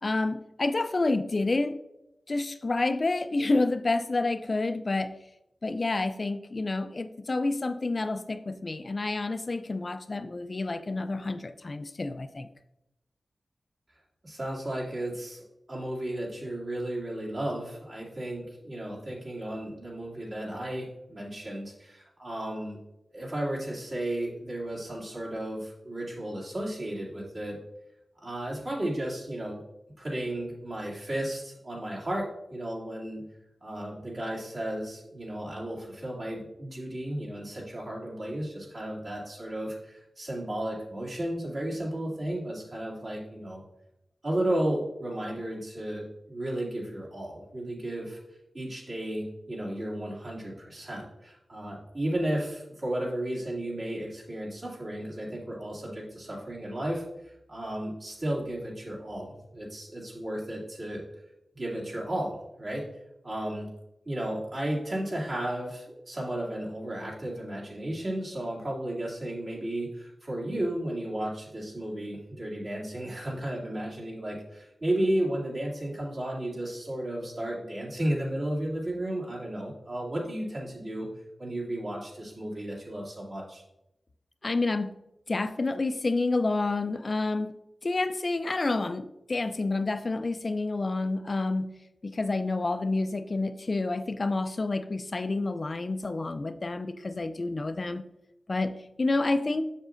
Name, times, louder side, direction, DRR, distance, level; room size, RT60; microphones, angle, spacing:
voice 1, 0.0-1.8 2.3-5.2 5.6-12.5 84.4-85.0 85.3-87.5 87.8-91.8 92.0-98.1 98.5-99.7, left 2 dB, 45° left, 10 dB, 0.3 m, -29 dB
voice 2, 14.2-22.8 23.1-27.6 28.2-29.6 30.0-33.2 33.6-43.6 44.2-48.2 48.5-57.1 57.5-61.0 61.5-62.8 63.2-63.7 64.1-81.1 81.4-83.6, right 1 dB, 55° right, -5 dB, 2.3 m, -33 dB
7.2 x 6.5 x 2.5 m, 0.87 s
wide cardioid pair, 80°, 0 cm